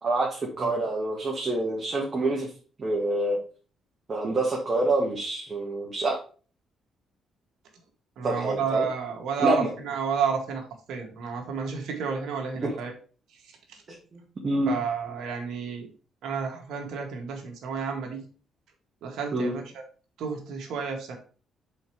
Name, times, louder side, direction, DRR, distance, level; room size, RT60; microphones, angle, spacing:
voice 1, 0.0-2.5 2.8-3.4 4.1-6.2 8.2-8.9 9.4-9.7 12.6-12.7 14.1-14.7 19.3-19.6, right 2 dB, 35° right, -2 dB, 1.8 m, -27 dB
voice 2, 8.2-12.9 13.7-13.8 14.7-15.9 16.2-18.2 19.0-19.6 20.2-21.2, right 6 dB, 80° right, 2 dB, 1.9 m, -31 dB
5.4 x 4.5 x 4.8 m, 0.38 s
cardioid pair, 90°, 0 cm